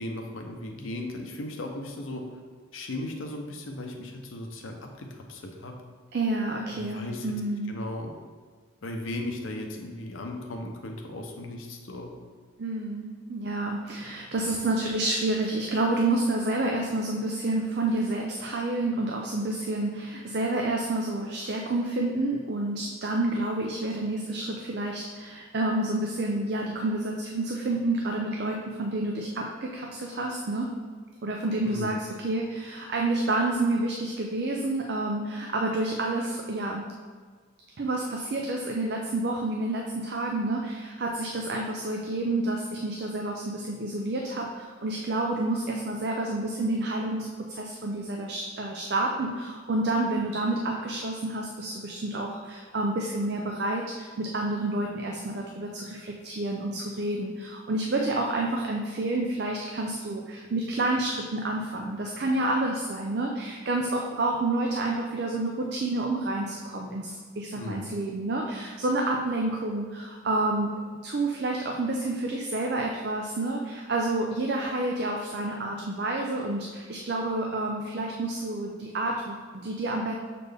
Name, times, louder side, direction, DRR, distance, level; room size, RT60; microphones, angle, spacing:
voice 1, 0.0-2.2 2.7-5.7 6.7-7.3 7.7-8.1 8.8-12.1 31.6-31.9 67.5-67.9, left 1 dB, 90° left, 2 dB, 0.8 m, -36 dB
voice 2, 6.1-7.7 12.6-30.7 31.2-36.9 37.8-70.7 71.0-80.1, right 2 dB, 55° right, 1 dB, 0.5 m, -29 dB
6.5 x 4.2 x 3.4 m, 1.6 s
head